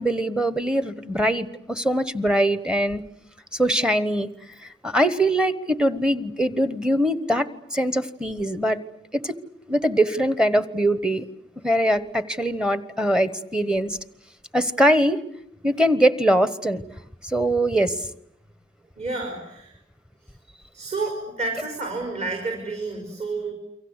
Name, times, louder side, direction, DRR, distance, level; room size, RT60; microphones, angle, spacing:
voice 1, 0.0-3.0 3.5-4.3 4.8-8.8 9.1-9.4 9.7-11.3 11.6-14.0 14.5-15.2 15.6-16.8 17.3-17.9, right 1 dB, 5° right, 13 dB, 1.2 m, -22 dB
voice 2, 19.0-19.8 20.7-23.5, right 3 dB, 40° right, 3 dB, 4.8 m, -30 dB
29.0 x 24.0 x 8.2 m, 0.72 s
head